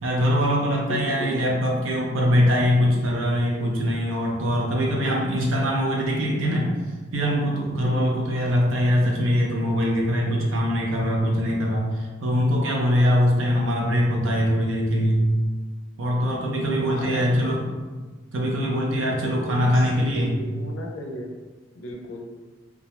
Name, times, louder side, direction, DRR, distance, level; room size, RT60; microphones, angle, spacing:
voice 1, 0.0-6.7 7.1-15.3 16.0-17.8 18.3-20.4, equal, 85° right, -1 dB, 0.5 m, -22 dB
voice 2, 0.9-1.5 7.8-8.3 16.9-17.6 19.2-21.3 21.7-22.3, left 1 dB, 85° left, 1 dB, 0.4 m, -35 dB
2.3 x 2.0 x 2.8 m, 1.3 s
head